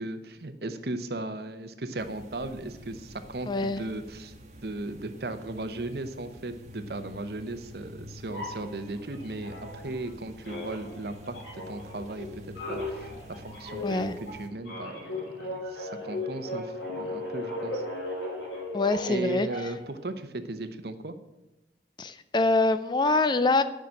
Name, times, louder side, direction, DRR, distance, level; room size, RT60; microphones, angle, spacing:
voice 1, 0.0-4.3 4.6-12.3 12.6-17.8 19.1-21.2, right 2 dB, 60° right, 9 dB, 0.8 m, -37 dB
sound 1, 2.0-14.5, left 1 dB, 40° right, 1.2 m, -47 dB
voice 2, 3.5-3.8 13.8-14.1 18.7-19.5 22.0-23.6, left 2 dB, 25° left, 12 dB, 0.4 m, -24 dB
sound 2, 8.3-10.1 10.4-19.9, left 1 dB, 85° left, 3.9 m, -37 dB
9.6 x 5.8 x 7.4 m, 1.0 s
head